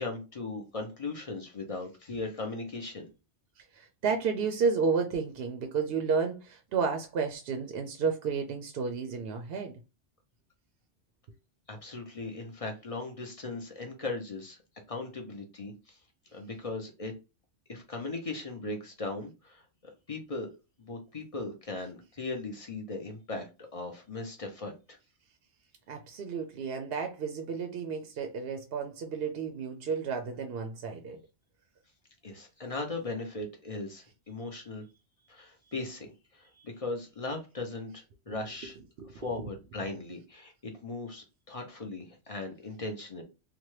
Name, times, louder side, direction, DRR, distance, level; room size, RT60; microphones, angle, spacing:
voice 1, 0.0-3.1 11.7-14.6 14.9-16.0 16.3-17.1 17.7-19.6 20.1-20.5 20.8-25.0 32.2-34.8 35.3-38.8 39.1-43.2, left 3 dB, 40° left, 0.6 m, -38 dB
voice 2, 3.6-9.8 25.9-31.2 39.0-39.5, right 5 dB, 65° right, 0.7 m, -32 dB
2.9 x 2.2 x 3.1 m
omnidirectional pair, 1.2 m